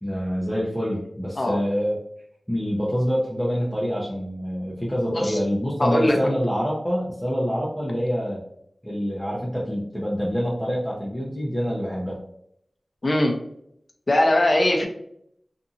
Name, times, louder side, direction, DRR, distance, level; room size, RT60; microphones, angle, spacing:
voice 1, 0.0-2.0 2.5-8.4 8.8-12.2, equal, 5° left, -7 dB, 0.7 m, -26 dB
voice 2, 5.1-5.4 5.8-6.2 13.0-13.3 14.1-14.9, left 1 dB, 45° left, 2 dB, 0.6 m, -20 dB
2.6 x 2.6 x 2.5 m, 0.71 s
wide cardioid pair, 75°, 0 cm